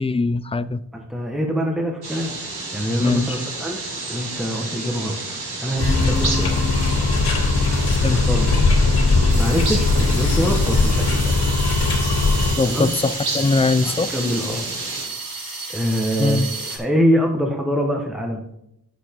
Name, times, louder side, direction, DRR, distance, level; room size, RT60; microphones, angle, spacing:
voice 1, 0.0-0.8 3.0-3.4 6.0-6.1 8.0-8.2 12.6-14.1 16.2-16.5, left 3 dB, 15° left, 16 dB, 0.4 m, -21 dB
voice 2, 0.9-2.3 2.7-3.8 4.1-5.2 5.6-6.6 8.1-8.6 9.4-11.4 12.6-12.9 13.8-14.7 15.7-18.4, equal, ahead, 1 dB, 1.3 m, -24 dB
sound 1, 2.0-15.1, right 3 dB, 80° right, 2.8 m, -31 dB
sound 2, 5.8-12.5, left 3 dB, 85° left, 3.1 m, -19 dB
sound 3, 9.3-16.8, right 3 dB, 60° right, 2.3 m, -33 dB
9.5 x 7.4 x 3.8 m, 0.80 s
wide cardioid pair, 75°, 38 cm